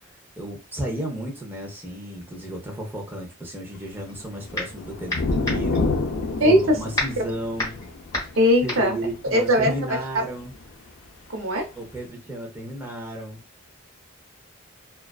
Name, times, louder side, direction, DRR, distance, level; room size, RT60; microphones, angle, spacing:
voice 1, 0.4-6.0 6.4-7.8 8.6-10.5 11.7-13.4, right 1 dB, 10° right, -1 dB, 0.6 m, -33 dB
sound 1, 4.0-4.8 5.1-10.1, left 1 dB, 15° left, 1.1 m, -31 dB
sound 2, 4.1-10.7 11.6-11.7, left 3 dB, 65° left, 0.4 m, -29 dB
voice 2, 8.4-9.0 9.3-9.7 11.3-11.6, equal, 85° right, 2 dB, 0.7 m, -19 dB
2.4 x 2.3 x 2.2 m, 0.29 s
head